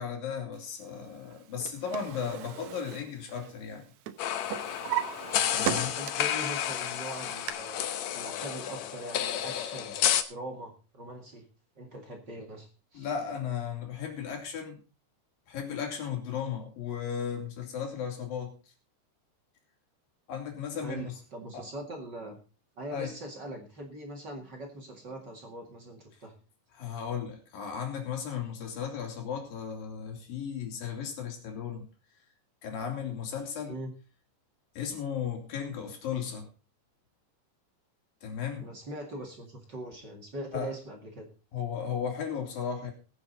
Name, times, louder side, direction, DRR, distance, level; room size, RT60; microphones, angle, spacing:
voice 1, 0.0-3.8 5.4-6.0 12.9-14.8 15.5-18.5 20.3-21.1 21.5-21.7 22.9-23.1 26.7-31.9 32.6-33.8 34.8-36.5 38.2-38.7 39.2-39.3 40.5-40.7 41.5-42.9, left 7 dB, 90° left, 3 dB, 4.5 m, -35 dB
Drawer open or close, 1.3-3.8 4.1-6.4 6.8-7.5, right 11 dB, 70° right, 2.0 m, -36 dB
sound 1, 4.2-10.2, left 10 dB, 70° left, 1.8 m, -31 dB
voice 2, 5.9-10.0 10.3-11.4 11.8-13.1 20.8-22.4 22.8-26.3 33.7-33.9 38.6-41.3, right 1 dB, 35° right, 2 dB, 2.2 m, -41 dB
21.0 x 7.3 x 4.0 m, 0.33 s
omnidirectional pair, 3.9 m